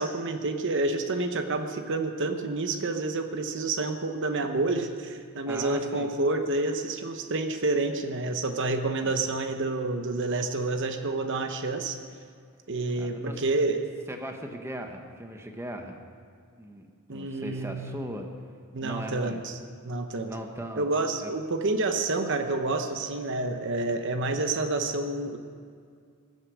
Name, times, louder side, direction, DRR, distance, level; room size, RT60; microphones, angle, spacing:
voice 1, 0.0-12.0 12.7-13.9 17.1-18.0 18.7-19.5 19.8-20.3 20.8-25.4, right 2 dB, 55° right, 6 dB, 0.9 m, -29 dB
voice 2, 5.5-6.1 9.0-9.1 12.9-13.4 14.1-16.0 16.6-18.3 18.8-19.4 20.2-20.9 21.2-21.3, right 1 dB, 10° right, 3 dB, 1.1 m, -38 dB
21.0 x 8.1 x 6.2 m, 2.2 s
head